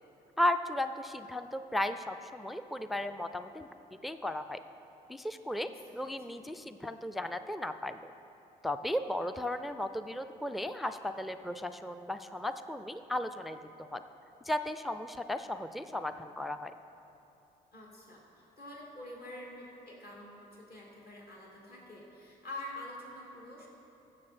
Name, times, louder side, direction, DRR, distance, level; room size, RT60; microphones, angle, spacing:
voice 1, 0.4-3.7 4.0-4.6 5.1-8.1 8.6-14.0 14.4-16.7, left 1 dB, ahead, 9 dB, 0.4 m, -35 dB
voice 2, 5.6-6.2 17.7-23.7, left 1 dB, 50° left, -4 dB, 2.7 m, -47 dB
15.0 x 6.8 x 4.4 m, 2.9 s
hypercardioid pair, 45°, 20 cm